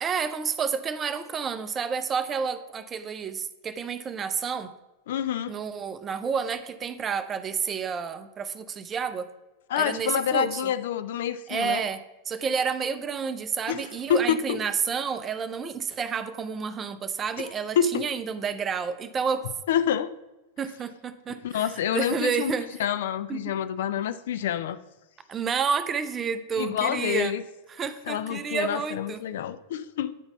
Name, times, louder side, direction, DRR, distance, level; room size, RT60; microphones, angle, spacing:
voice 1, 0.0-4.7 5.5-9.3 9.8-10.6 11.5-12.0 12.3-19.4 20.6-22.7 23.3-23.4 25.3-27.3 27.7-29.2, right 6 dB, 25° right, 0.5 m, -30 dB
voice 2, 5.1-5.5 9.7-11.8 13.7-14.6 17.8-18.1 19.7-20.1 21.4-22.5 22.8-24.8 26.6-27.4 28.1-30.1, left 9 dB, 55° left, 0.3 m, -27 dB
9.1 x 4.0 x 4.4 m
figure-of-eight pair, 90°, 0 cm